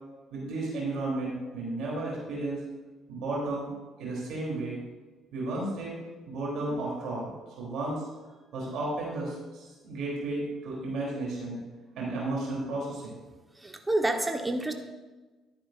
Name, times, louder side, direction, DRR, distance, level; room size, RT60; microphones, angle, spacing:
voice 1, 0.3-2.6 3.1-3.7 4.0-4.8 5.3-6.0 6.3-8.0 8.5-11.6 11.9-13.2, right 2 dB, 60° right, -4 dB, 3.6 m, -33 dB
voice 2, 13.5-14.7, right 2 dB, 15° right, 5 dB, 1.4 m, -28 dB
12.0 x 9.9 x 2.6 m, 1.2 s
hypercardioid pair, 50°, 0 cm